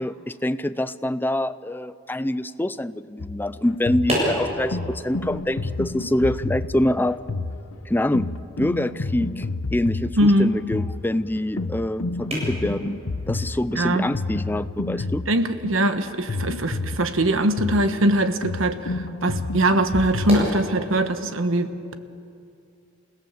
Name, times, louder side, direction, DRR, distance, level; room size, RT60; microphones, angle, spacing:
voice 1, 0.0-7.2 7.9-8.3 8.6-9.5 9.7-13.0 13.3-15.2, left 1 dB, 10° left, 14 dB, 0.5 m, -25 dB
sound 1, 3.2-20.4, left 3 dB, 80° left, 0.8 m, -30 dB
sound 2, 3.8-20.5, equal, 30° right, 7.8 m, -36 dB
voice 2, 10.2-10.6 13.7-14.1 15.3-21.9, right 1 dB, 70° right, 9 dB, 1.3 m, -22 dB
28.5 x 17.0 x 7.4 m, 2.6 s
head